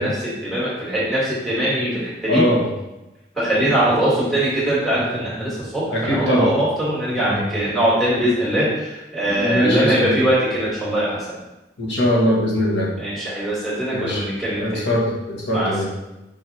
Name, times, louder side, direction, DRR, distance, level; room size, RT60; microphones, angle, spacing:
voice 1, 0.0-2.4 3.3-11.3 13.0-14.8 15.5-15.8, right 1 dB, ahead, -9 dB, 2.2 m, -22 dB
voice 2, 2.3-2.6 5.9-6.5 7.2-7.4 9.3-10.2 11.8-12.9 13.9-14.2 14.6-15.8, equal, 85° left, -5 dB, 1.7 m, -21 dB
5.9 x 4.7 x 3.5 m, 0.99 s
head